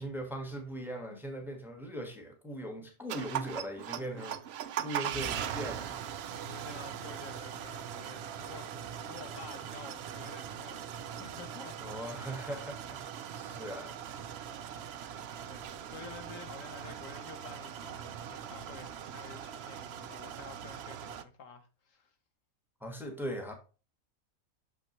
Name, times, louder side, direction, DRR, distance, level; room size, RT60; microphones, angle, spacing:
voice 1, 0.0-6.0 11.8-13.0 13.3-14.0 22.8-23.5, equal, ahead, 1.2 m, -40 dB
sound 1, 3.1-21.2, right 9 dB, 65° right, 0.6 m, -40 dB
voice 2, 6.3-12.2 15.4-22.1, left 4 dB, 70° left, 1.3 m, -50 dB
6.6 x 5.9 x 3.0 m
omnidirectional pair, 1.5 m